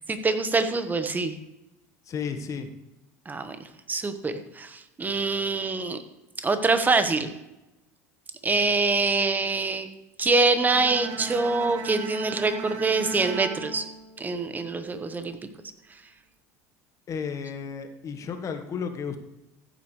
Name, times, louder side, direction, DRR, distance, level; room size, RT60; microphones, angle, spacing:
voice 1, 0.1-1.3 3.2-3.6 3.9-6.0 6.4-7.3 8.4-9.9 10.2-13.9 14.2-15.4, right 3 dB, 20° right, 9 dB, 1.3 m, -25 dB
voice 2, 2.1-2.7 17.1-19.2, left 6 dB, 40° left, 7 dB, 1.4 m, -33 dB
Bowed string instrument, 10.7-14.8, right 5 dB, 70° right, 1.7 m, -37 dB
14.5 x 8.3 x 3.3 m, 0.94 s
hypercardioid pair, 75°, 8 cm